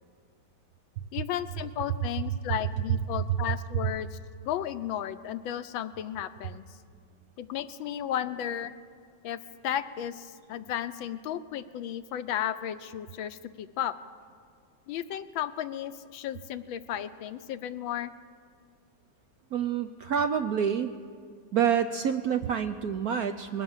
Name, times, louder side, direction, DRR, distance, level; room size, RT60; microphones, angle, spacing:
voice 1, 1.1-6.6 7.4-8.7 9.2-9.4 9.6-13.9 14.9-18.1, left 10 dB, 80° left, 11 dB, 1.5 m, -34 dB
voice 2, 19.5-20.9 21.5-23.6, right 8 dB, 70° right, 9 dB, 0.9 m, -27 dB
21.0 x 17.0 x 7.3 m, 2.1 s
omnidirectional pair, 2.2 m